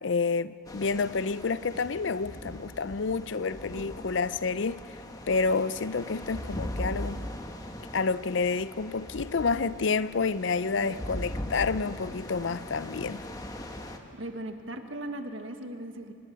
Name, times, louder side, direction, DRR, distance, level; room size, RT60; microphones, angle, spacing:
voice 1, 0.0-4.8 5.3-7.3 7.9-13.2, left 4 dB, 70° left, 0.5 m, -29 dB
sound 1, 0.7-14.0, left 1 dB, 20° left, 1.2 m, -40 dB
voice 2, 10.7-11.5 14.1-16.1, right 1 dB, 80° right, 1.6 m, -39 dB
25.0 x 19.5 x 6.7 m
head